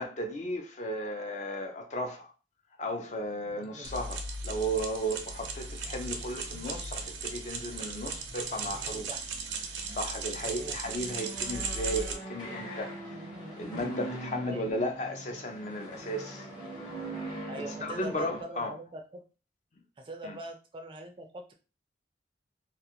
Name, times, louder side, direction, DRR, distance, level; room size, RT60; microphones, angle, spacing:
voice 1, 0.0-2.3 2.8-4.2 4.4-9.1 9.9-12.9 13.6-16.4 17.8-18.7 20.2-20.3, equal, 40° left, 0.4 m, -35 dB
sound 1, 3.2-4.0 4.4-18.4, right 2 dB, 25° left, 0.8 m, -44 dB
voice 2, 3.5-3.9 8.7-9.2 10.4-10.8 14.4-14.6 17.5-19.3 20.0-21.5, right 1 dB, 30° right, 0.3 m, -43 dB
sound 2, 3.8-12.1, right 4 dB, 90° right, 0.5 m, -37 dB
2.4 x 2.3 x 2.8 m
head